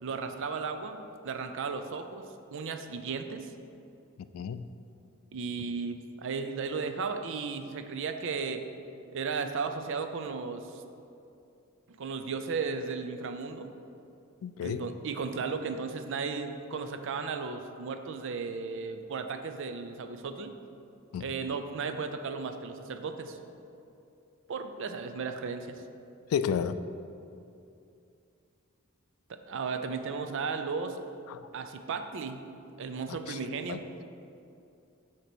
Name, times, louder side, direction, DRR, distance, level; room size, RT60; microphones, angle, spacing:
voice 1, 0.0-2.2 2.5-3.5 5.3-8.6 9.1-10.8 12.0-13.7 14.6-20.5 21.2-23.4 24.5-25.8 29.3-31.0 31.5-32.4 32.8-33.9, right 5 dB, 65° right, 7 dB, 0.5 m, -35 dB
voice 2, 4.2-4.7 14.4-14.8 21.1-21.3 26.3-26.8 31.3-31.4 33.1-33.4 33.7-33.8, left 7 dB, 80° left, 15 dB, 0.3 m, -32 dB
8.0 x 2.9 x 6.0 m, 2.6 s
head